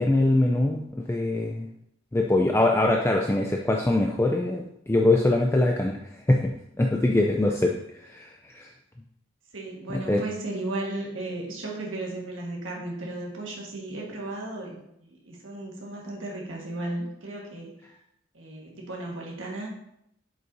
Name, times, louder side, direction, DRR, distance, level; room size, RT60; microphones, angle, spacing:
voice 1, 0.0-1.7 2.1-6.0 6.3-6.5 6.8-7.7 8.0-8.3 8.5-8.7 9.9-10.2, left 2 dB, 15° left, 1 dB, 0.3 m, -23 dB
voice 2, 9.5-17.7 18.3-19.7, right 2 dB, 75° right, -2 dB, 1.5 m, -35 dB
7.6 x 5.5 x 2.6 m, 0.77 s
head